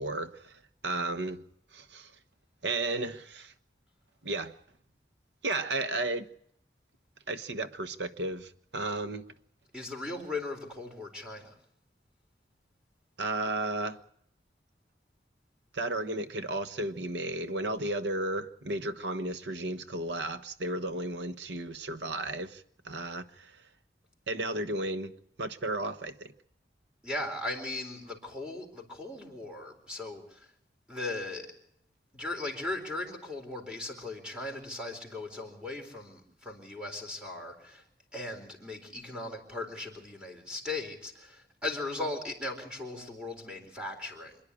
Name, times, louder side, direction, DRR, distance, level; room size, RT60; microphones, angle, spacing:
voice 1, 0.0-1.4 1.7-2.1 2.6-3.5 4.2-4.5 5.4-6.3 7.3-9.3 13.2-14.0 15.7-23.5 24.3-25.1 25.4-26.3, right 2 dB, 90° right, 1.3 m, -33 dB
voice 2, 9.7-11.5 27.0-30.5 30.9-31.5 32.1-37.8 38.1-44.4, left 2 dB, 5° right, 4.1 m, -38 dB
27.0 x 10.5 x 9.9 m
head